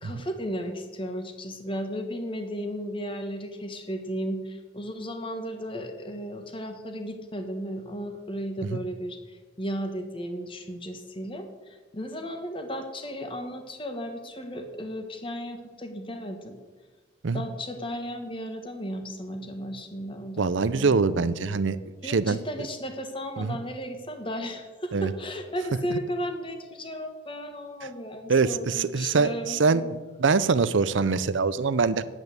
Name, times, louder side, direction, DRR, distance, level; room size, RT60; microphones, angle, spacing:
voice 1, 0.0-16.6 17.3-21.3 22.0-29.9, equal, 25° left, 6 dB, 1.3 m, -35 dB
voice 2, 20.4-21.8 22.0-22.4 23.4-23.6 24.9-25.1 28.3-29.8 30.2-32.0, right 4 dB, 70° right, 15 dB, 0.6 m, -23 dB
8.9 x 8.2 x 8.0 m, 1.4 s
head